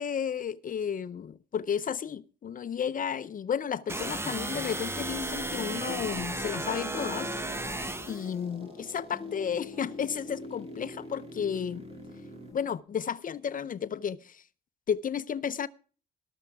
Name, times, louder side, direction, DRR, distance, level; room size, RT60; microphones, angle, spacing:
voice 1, 0.0-7.6 8.1-11.8 12.5-14.4 14.9-15.7, left 7 dB, 45° left, 0.6 m, -33 dB
sound 1, 3.9-8.3, right 2 dB, 10° right, 1.0 m, -34 dB
sound 2, 4.9-12.8, left 4 dB, 15° left, 2.0 m, -44 dB
sound 3, 5.1-12.5, right 3 dB, 30° right, 2.7 m, -51 dB
13.5 x 13.0 x 3.5 m
cardioid pair, 90°, 20 cm